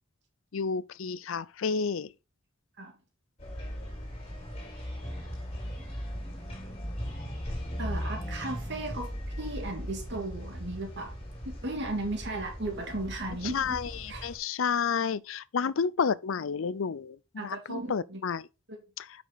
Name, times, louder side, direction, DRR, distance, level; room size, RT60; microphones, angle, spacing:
voice 1, 0.5-2.1 13.4-18.5 19.0-19.1, left 6 dB, 80° left, 0.5 m, -30 dB
sound 1, 3.4-14.4, equal, 30° left, 3.5 m, -38 dB
voice 2, 7.8-9.1 9.4-11.1 11.4-13.8 14.1-14.3 17.4-18.2 18.7-18.8, right 2 dB, 60° right, 2.2 m, -35 dB
9.2 x 6.0 x 4.0 m
head